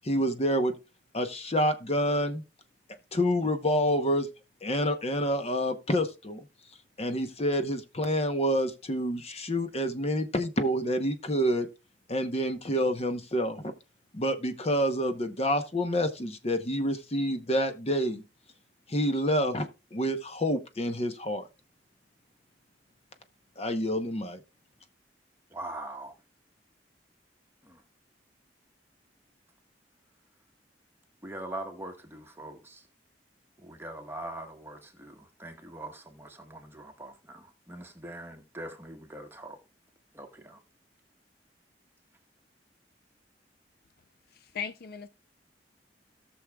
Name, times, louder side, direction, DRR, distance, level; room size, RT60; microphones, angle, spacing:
voice 1, 0.0-0.7 1.1-2.4 3.1-4.3 4.6-6.4 7.0-11.7 12.1-13.7 14.1-18.2 18.9-21.5 23.6-24.4, equal, 35° left, 0.9 m, -28 dB
voice 2, 25.5-26.1 27.6-27.8 31.2-32.9 33.6-39.6 40.1-40.6, right 1 dB, 15° right, 1.4 m, -42 dB
voice 3, 44.3-45.1, left 7 dB, 60° left, 0.5 m, -37 dB
18.0 x 6.3 x 2.3 m
head